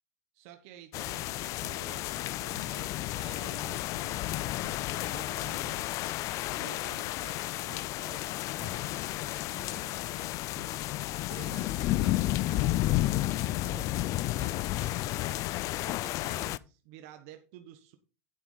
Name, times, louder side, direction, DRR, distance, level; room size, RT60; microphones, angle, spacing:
voice 1, 0.3-6.0 6.5-10.3 11.3-15.1 15.8-18.0, right 11 dB, 60° right, 6 dB, 1.2 m, -51 dB
sound 1, 0.9-16.6, left 16 dB, 40° left, 0.4 m, -32 dB
sound 2, 7.7-8.0 8.6-9.0 9.6-10.0 10.6-11.0 11.5-11.8, left 2 dB, 20° left, 2.3 m, -50 dB
9.5 x 7.7 x 3.9 m, 0.33 s
supercardioid pair, 135°, 8 cm